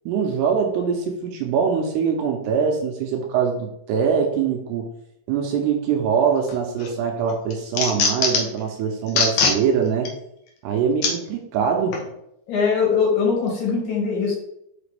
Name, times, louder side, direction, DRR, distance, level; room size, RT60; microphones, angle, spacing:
voice 1, 0.1-4.9 5.3-10.1 10.6-12.0, right 6 dB, 80° right, 2 dB, 2.6 m, -23 dB
sound 1, 6.5-6.9 7.3-8.6 9.1-9.6 10.1-10.2 11.0-11.1 11.9-12.1, left 4 dB, 80° left, 1.7 m, -21 dB
voice 2, 12.5-14.3, left 5 dB, 55° left, -4 dB, 3.2 m, -21 dB
6.0 x 5.7 x 3.3 m, 0.78 s
omnidirectional pair, 5.2 m